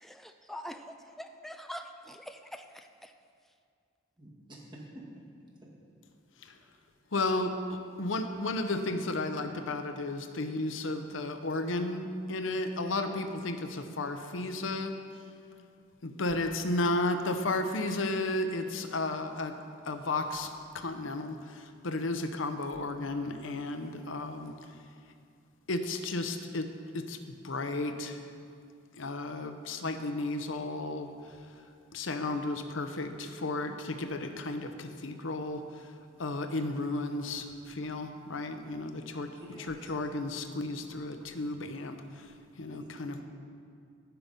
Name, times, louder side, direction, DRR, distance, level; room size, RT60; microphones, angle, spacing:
voice 1, 0.0-0.7 1.4-3.1, equal, ahead, 6 dB, 0.4 m, -44 dB
voice 2, 4.2-5.2 5.6-5.7 39.3-39.9 42.7-43.2, right 1 dB, 25° right, -3 dB, 2.0 m, -48 dB
voice 3, 7.1-15.0 16.0-19.6 19.8-24.5 25.7-26.7 26.9-28.2 29.0-31.1 31.9-35.6 36.2-39.3 39.7-42.3 42.6-43.1, left 2 dB, 85° left, 7 dB, 0.8 m, -33 dB
17.0 x 5.9 x 5.3 m, 2.3 s
head